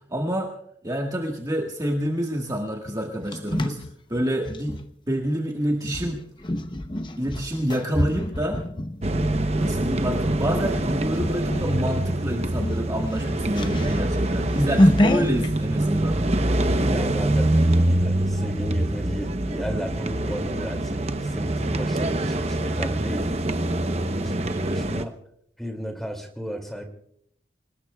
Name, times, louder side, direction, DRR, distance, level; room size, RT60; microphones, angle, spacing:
voice 1, 0.1-0.5 0.8-3.8 4.1-4.8 5.1-6.2 7.2-8.6 9.5-16.2 24.2-24.8, equal, 20° right, 0 dB, 1.6 m, -27 dB
sound 1, 2.9-4.8 5.8-10.0 10.5-10.8 11.1-11.8 12.1-12.2 12.5-15.5, left 1 dB, 25° left, 0.8 m, -26 dB
sound 2, 9.0-25.0, right 1 dB, 35° right, 0.8 m, -25 dB
voice 2, 16.3-23.3 24.0-25.1 25.6-26.8, equal, ahead, 4 dB, 2.5 m, -34 dB
27.0 x 19.0 x 2.3 m, 0.71 s
head